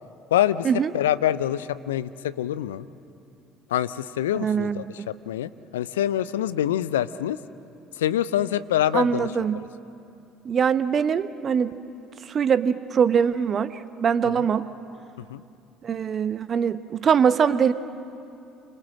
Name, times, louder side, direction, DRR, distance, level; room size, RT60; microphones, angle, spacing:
voice 1, 0.3-0.7 0.9-2.9 3.7-7.4 8.0-9.3 14.4-14.5 15.3-15.4, left 11 dB, 75° left, 15 dB, 0.7 m, -25 dB
voice 2, 4.3-5.1 8.9-9.6 10.4-11.7 12.3-13.7 14.0-14.7 15.8-17.7, right 7 dB, 40° right, 13 dB, 1.1 m, -22 dB
29.5 x 25.5 x 7.5 m, 2.6 s
figure-of-eight pair, 60°, 0 cm